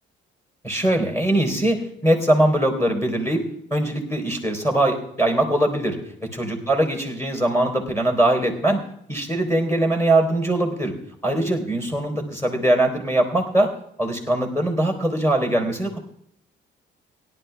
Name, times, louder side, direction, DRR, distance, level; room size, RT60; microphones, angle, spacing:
voice 1, 0.6-3.4 3.7-8.8 9.1-10.9 11.2-13.7 14.0-16.0, right 1 dB, 15° left, 3 dB, 3.7 m, -21 dB
17.5 x 11.5 x 3.4 m, 0.71 s
cardioid pair, 90°, 20 cm